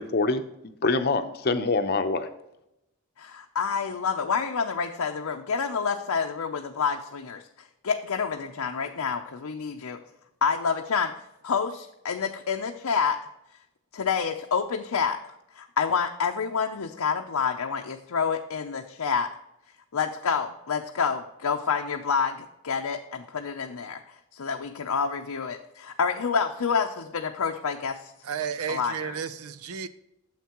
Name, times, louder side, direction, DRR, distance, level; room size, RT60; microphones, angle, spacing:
voice 1, 0.0-2.3, left 3 dB, 45° left, 8 dB, 0.7 m, -25 dB
voice 2, 3.2-7.4 7.8-10.0 10.4-11.1 11.4-13.2 13.9-15.2 15.5-19.3 19.9-22.4 22.6-24.0 24.3-28.1 28.7-29.2, left 6 dB, 90° left, 3 dB, 0.6 m, -28 dB
voice 3, 28.2-29.9, right 7 dB, 90° right, 14 dB, 0.6 m, -32 dB
9.3 x 7.2 x 3.0 m, 0.86 s
head